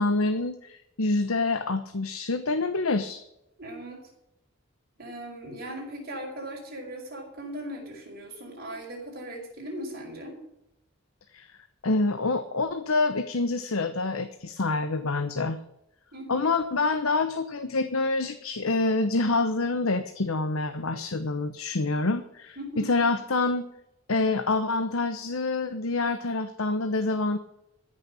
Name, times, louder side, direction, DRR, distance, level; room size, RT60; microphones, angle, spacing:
voice 1, 0.0-3.2 11.3-11.5 11.8-15.6 16.3-23.7 24.1-27.4, left 3 dB, 80° left, 9 dB, 1.0 m, -26 dB
voice 2, 3.6-4.0 5.0-10.4 16.1-16.5 22.6-22.9, right 1 dB, 45° right, 0 dB, 5.0 m, -38 dB
14.0 x 6.5 x 8.9 m, 0.85 s
head